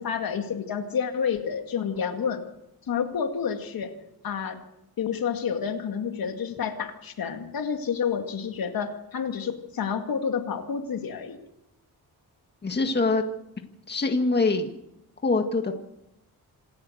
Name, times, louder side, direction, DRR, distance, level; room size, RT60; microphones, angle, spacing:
voice 1, 0.0-2.4 2.9-3.9 4.2-4.6 5.0-11.4, left 7 dB, 65° left, 5 dB, 2.2 m, -29 dB
voice 2, 12.6-13.2 13.9-14.7 15.2-15.7, left 3 dB, 25° left, 4 dB, 1.8 m, -24 dB
27.0 x 13.0 x 8.0 m, 0.84 s
wide cardioid pair, 155°, 38 cm